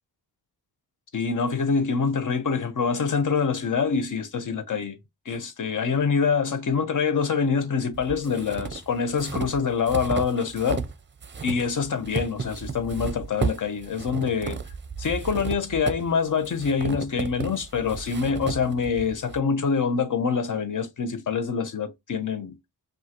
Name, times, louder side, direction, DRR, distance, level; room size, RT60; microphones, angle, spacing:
voice 1, 1.1-5.0 5.2-10.8 11.4-14.6 15.0-22.6, left 5 dB, 50° left, 0.9 m, -25 dB
sound 1, 7.9-11.0 11.2-19.4, right 5 dB, 30° right, 0.6 m, -34 dB
5.3 x 2.5 x 2.9 m
wide cardioid pair, 105°, 40 cm